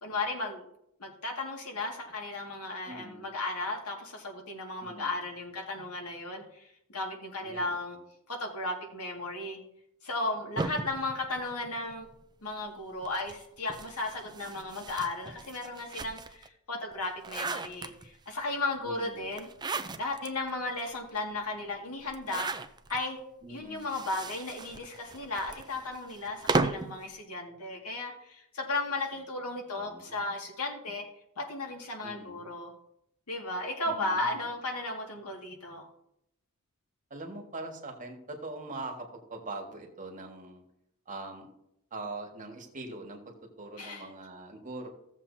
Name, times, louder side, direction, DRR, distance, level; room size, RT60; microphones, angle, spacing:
voice 1, 0.0-0.7 1.0-8.0 8.3-9.6 10.0-12.1 12.4-19.5 20.0-23.2 23.5-31.0 31.4-32.7 33.3-35.9 43.8-44.1, left 2 dB, 80° left, 1 dB, 2.0 m, -35 dB
voice 2, 2.9-3.3 4.8-5.1 7.4-8.0 10.5-10.9 18.8-19.3 23.4-23.9 29.7-30.2 32.0-32.5 33.9-34.3 37.1-40.6 41.1-41.5 41.9-44.9, right 2 dB, 35° right, 2 dB, 1.7 m, -43 dB
sound 1, 10.6-12.2 13.0-16.5 16.9-18.3 19.3-20.3 20.8-20.9 21.1-21.2 22.1-23.0 23.7-27.0, right 3 dB, 20° right, 0.5 m, -35 dB
16.0 x 7.4 x 2.7 m, 0.78 s
head